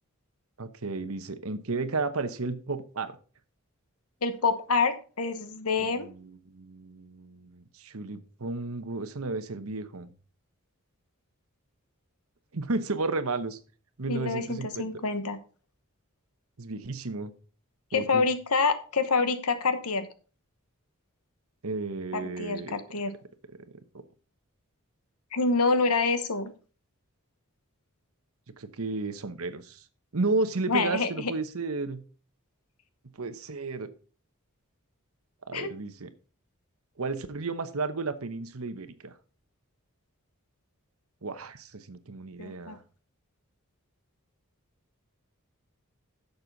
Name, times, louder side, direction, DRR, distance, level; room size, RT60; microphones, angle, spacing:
voice 1, 0.6-3.2 5.8-10.1 12.5-13.6 14.0-14.9 16.6-17.3 17.9-18.2 21.6-22.8 28.6-29.8 30.1-32.0 33.2-33.9 35.5-36.1 37.0-39.1 41.2-42.8, right 3 dB, 75° right, 11 dB, 1.0 m, -33 dB
voice 2, 4.2-6.1 14.1-15.4 17.9-20.1 22.1-23.2 25.3-26.5 30.7-31.3 35.5-35.7 42.4-42.8, left 4 dB, 85° left, 10 dB, 1.2 m, -27 dB
10.5 x 6.8 x 4.0 m, 0.38 s
head